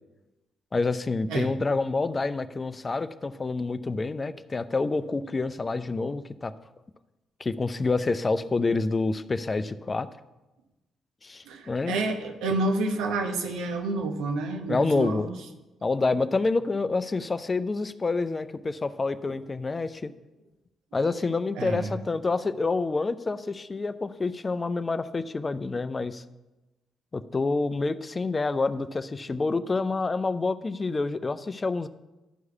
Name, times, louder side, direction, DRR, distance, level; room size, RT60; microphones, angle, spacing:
voice 1, 0.7-6.5 7.4-10.1 11.2-12.0 14.7-15.3 15.8-20.1 20.9-26.2 27.1-31.9, left 3 dB, 35° left, 13 dB, 0.5 m, -28 dB
voice 2, 11.4-15.3 21.5-21.9, right 2 dB, 70° right, 5 dB, 1.0 m, -29 dB
11.0 x 4.8 x 6.9 m, 1.1 s
hypercardioid pair, 45°, 0 cm